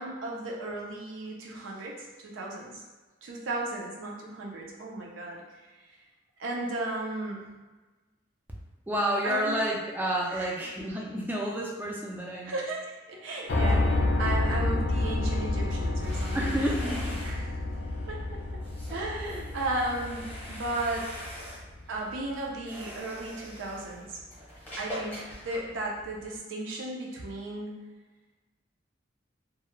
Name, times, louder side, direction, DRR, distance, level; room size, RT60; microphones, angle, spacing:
voice 1, 0.0-2.7 3.2-5.4 6.4-7.5 9.2-9.6 10.3-10.5 12.4-16.4 17.2-17.5 18.1-18.6 18.9-21.1 21.9-24.2 24.8-27.8, right 2 dB, 85° right, -2 dB, 0.4 m, -35 dB
voice 2, 8.9-12.6 16.3-17.2, right 1 dB, 10° right, -2 dB, 0.3 m, -30 dB
Piano, 13.5-21.5, left 2 dB, 70° left, 0.4 m, -29 dB
sound 1, 15.7-26.4, equal, 10° left, 0.7 m, -44 dB
2.3 x 2.0 x 2.9 m, 1.2 s
head